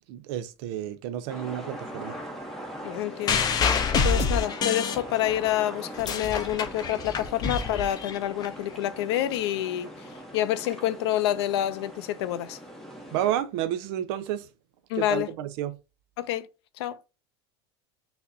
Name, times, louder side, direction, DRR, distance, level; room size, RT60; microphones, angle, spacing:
voice 1, 0.1-2.1 13.1-14.5 15.0-15.8, right 11 dB, 70° right, 0.5 m, -30 dB
sound 1, 1.3-13.4, equal, 5° left, 0.8 m, -41 dB
voice 2, 2.8-3.5 4.0-9.9 10.3-12.6 14.9-15.3 16.2-16.5 16.8-17.0, left 13 dB, 85° left, 0.4 m, -28 dB
sound 2, 3.3-5.5 5.8-8.5 9.3-9.4, left 5 dB, 30° left, 0.5 m, -27 dB
5.9 x 2.0 x 2.6 m
supercardioid pair, 125°, 13 cm